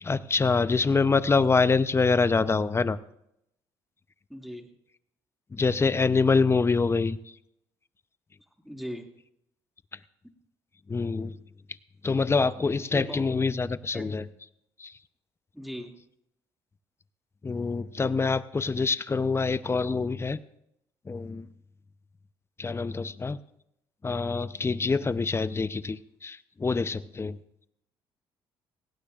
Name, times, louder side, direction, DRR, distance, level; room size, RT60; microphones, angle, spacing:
voice 1, 0.0-3.0 5.5-7.2 10.9-11.3 12.0-14.2 14.8-14.9 17.4-20.4 21.1-21.4 22.6-23.4 24.0-27.4, left 4 dB, 25° left, 15 dB, 0.7 m, -25 dB
voice 2, 4.3-4.7 8.6-9.1 12.8-13.3 13.7-14.3 15.5-15.9, equal, ahead, 2 dB, 2.3 m, -39 dB
18.5 x 16.5 x 2.5 m, 0.78 s
supercardioid pair, 70°, 10 cm